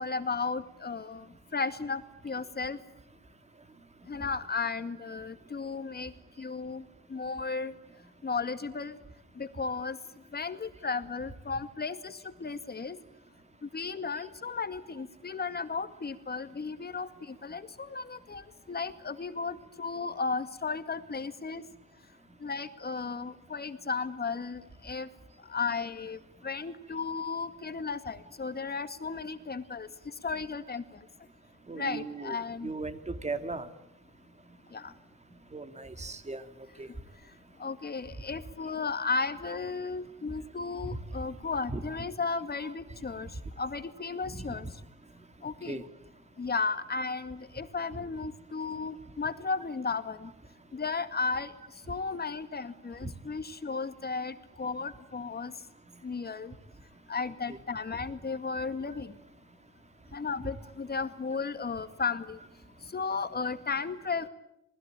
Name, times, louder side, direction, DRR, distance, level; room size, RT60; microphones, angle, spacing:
voice 1, 0.0-2.8 4.1-6.1 6.4-6.8 7.1-7.7 8.2-9.0 9.4-10.0 10.3-13.0 13.6-21.6 22.4-25.1 25.4-31.0 31.7-32.7 34.7-34.9 37.6-43.3 43.6-44.7 45.4-45.8 46.4-50.3 50.7-51.5 51.9-55.5 56.0-56.5 57.1-59.2 60.1-62.4 62.9-64.3, left 4 dB, 30° left, 10 dB, 2.1 m, -34 dB
voice 2, 31.7-33.7 35.5-36.4 36.8-36.9 39.5-39.6 41.7-42.0 42.6-42.7 44.3-44.6 45.7-45.8 53.0-53.1 57.5-57.6, right 3 dB, 20° right, 9 dB, 2.7 m, -38 dB
27.5 x 20.5 x 9.0 m, 0.81 s
cardioid pair, 90°, 30 cm